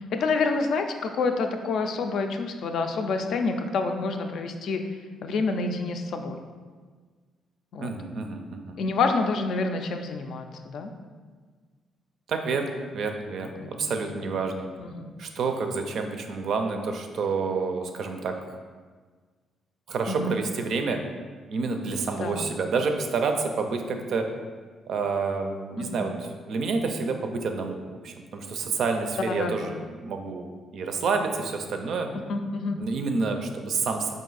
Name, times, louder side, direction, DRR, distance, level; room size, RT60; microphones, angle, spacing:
voice 1, 0.1-4.8 5.2-6.4 7.7-7.9 8.8-10.9 13.6-14.0 14.8-15.1 20.1-20.4 22.2-22.5 25.8-26.1 29.3-29.7 32.3-32.8, left 4 dB, 70° left, 6 dB, 0.3 m, -28 dB
voice 2, 7.8-8.8 12.3-14.7 15.2-18.4 19.9-21.0 21.5-24.3 24.9-32.1 32.8-34.1, right 4 dB, 65° right, 5 dB, 0.4 m, -29 dB
3.9 x 2.6 x 3.9 m, 1.5 s
cardioid pair, 90°, 0 cm